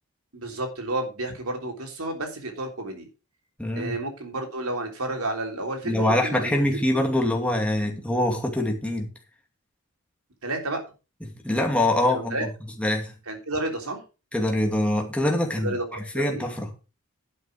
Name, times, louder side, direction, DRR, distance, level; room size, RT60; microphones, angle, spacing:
voice 1, 0.3-3.1 3.7-6.6 10.4-10.8 12.1-12.4 13.3-14.0 15.6-16.5, right 2 dB, 85° right, 3.4 m, -31 dB
voice 2, 3.6-4.0 5.8-9.1 11.2-12.4 12.8-13.1 14.3-16.7, left 1 dB, 5° left, 2.4 m, -24 dB
11.5 x 6.4 x 5.0 m
head